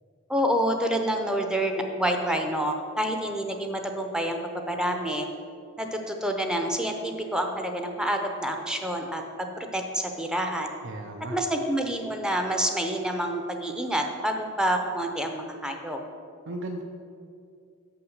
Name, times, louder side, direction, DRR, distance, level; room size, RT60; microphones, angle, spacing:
voice 1, 0.3-4.4 4.7-5.3 5.8-10.7 11.3-16.0, right 1 dB, 5° right, 4 dB, 0.6 m, -28 dB
voice 2, 10.8-11.4 16.5-16.8, right 2 dB, 60° right, 3 dB, 0.6 m, -35 dB
6.9 x 5.9 x 6.5 m, 2.4 s
head